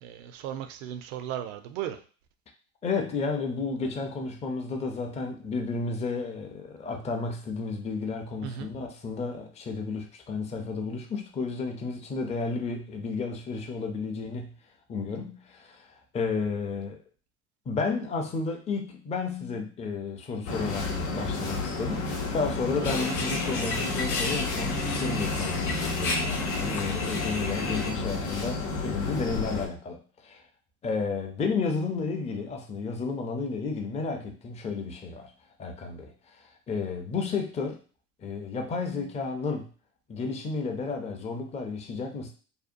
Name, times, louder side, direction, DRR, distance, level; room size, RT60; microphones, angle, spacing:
voice 1, 0.0-2.0 8.4-8.7, right 10 dB, 75° right, 8 dB, 0.5 m, -36 dB
voice 2, 2.8-14.5 14.9-17.0 17.7-30.4 30.8-35.3 35.6-37.8 38.2-39.7 40.1-42.3, left 4 dB, 20° left, 3 dB, 0.4 m, -32 dB
sound 1, 20.5-29.7, left 3 dB, 90° left, 0.7 m, -31 dB
sound 2, 22.8-27.9, left 3 dB, 50° left, 0.7 m, -33 dB
2.7 x 2.1 x 2.5 m, 0.39 s
hypercardioid pair, 90°, 38 cm